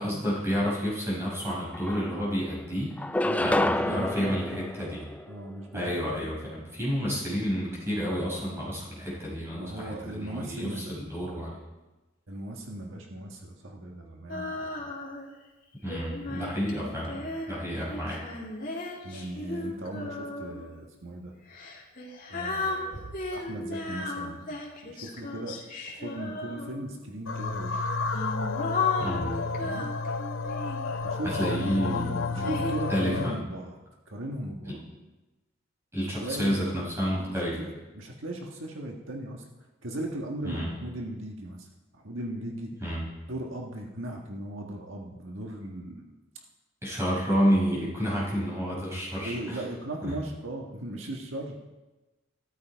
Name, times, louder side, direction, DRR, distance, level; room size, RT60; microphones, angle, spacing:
voice 1, 0.0-2.9 3.4-5.0 5.7-11.6 15.8-17.2 17.5-18.2 29.0-29.4 31.2-33.4 34.7-34.8 35.9-37.6 40.4-40.7 42.8-43.1 46.8-49.6 50.0-50.2, equal, 15° right, -5 dB, 5.4 m, -30 dB
sound 1, 1.3-1.4 1.7-2.5 3.0-5.6, left 1 dB, 5° left, 0.3 m, -29 dB
voice 2, 3.2-5.0 5.3-6.3 9.5-10.9 12.3-14.9 19.0-21.3 22.3-24.5 24.8-27.9 29.6-29.9 31.0-31.6 32.3-33.8 34.1-34.8 36.2-36.7 37.0-39.5 39.8-41.7 41.9-42.7 43.3-46.1 49.2-51.7, right 1 dB, 75° right, 1 dB, 1.6 m, -38 dB
Female singing, 14.3-15.3 15.9-20.7 21.5-27.0 27.8-30.9 31.6-32.7, left 3 dB, 40° left, 2.4 m, -35 dB
sound 2, 27.3-33.4, left 4 dB, 75° left, 0.7 m, -31 dB
14.5 x 13.5 x 4.6 m, 1.1 s
head